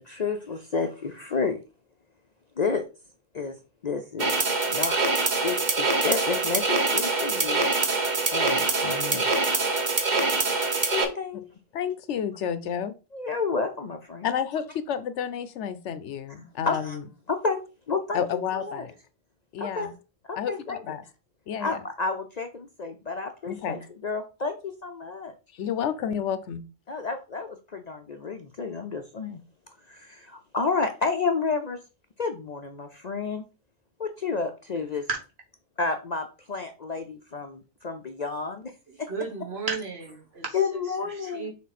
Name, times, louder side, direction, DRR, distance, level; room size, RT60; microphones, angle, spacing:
voice 1, 0.0-1.6 2.6-2.9 3.3-3.5 3.8-5.0 5.4-7.6 8.3-9.4 10.9-11.5 13.1-14.3 16.7-17.0 17.3-17.6 17.9-18.9 19.6-19.9 20.3-20.8 21.6-25.3 26.9-29.4 29.9-31.8 32.2-33.4 34.0-35.1 35.8-38.7 39.0-39.1 40.5-41.5, left 4 dB, 45° left, 0.6 m, -30 dB
sound 1, 4.2-11.0, right 3 dB, 40° right, 1.0 m, -24 dB
voice 2, 11.7-12.9 14.2-17.0 18.1-18.9 19.5-19.9 20.4-21.0 21.5-21.8 23.5-23.8 25.5-26.6, left 8 dB, 80° left, 1.0 m, -30 dB
voice 3, 39.1-40.6 41.1-41.5, right 4 dB, 60° right, 1.8 m, -33 dB
6.3 x 3.7 x 4.2 m
omnidirectional pair, 1.2 m